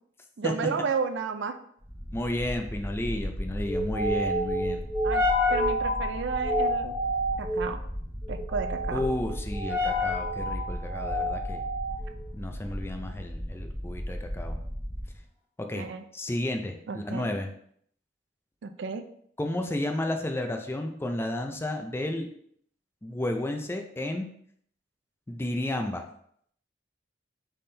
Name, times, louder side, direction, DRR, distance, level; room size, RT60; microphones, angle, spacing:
voice 1, 0.4-1.5 5.0-5.2 5.5-6.9 7.4-7.8 8.3-9.0 15.8-16.0 16.9-17.3 18.6-19.0, right 5 dB, 70° right, 8 dB, 0.4 m, -32 dB
sound 1, 1.9-15.2, equal, 10° right, 1.6 m, -30 dB
voice 2, 2.1-4.9 8.9-11.6 12.3-14.6 15.6-15.9 16.1-17.5 19.4-22.3 23.0-24.3 25.3-26.0, left 1 dB, 15° left, 4 dB, 0.4 m, -32 dB
4.1 x 3.6 x 3.3 m, 0.65 s
head